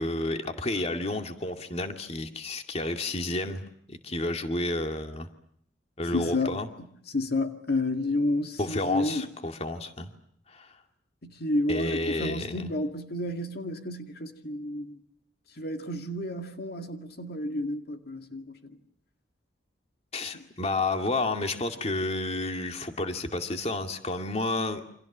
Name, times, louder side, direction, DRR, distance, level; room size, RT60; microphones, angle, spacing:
voice 1, 0.0-5.3 6.0-6.7 8.6-10.1 10.5-10.8 11.7-12.7 20.1-24.8, left 2 dB, 35° left, 2.3 m, -31 dB
voice 2, 6.1-9.3 11.2-15.0 15.6-18.8, left 2 dB, 60° left, 2.3 m, -31 dB
29.0 x 27.0 x 7.4 m
head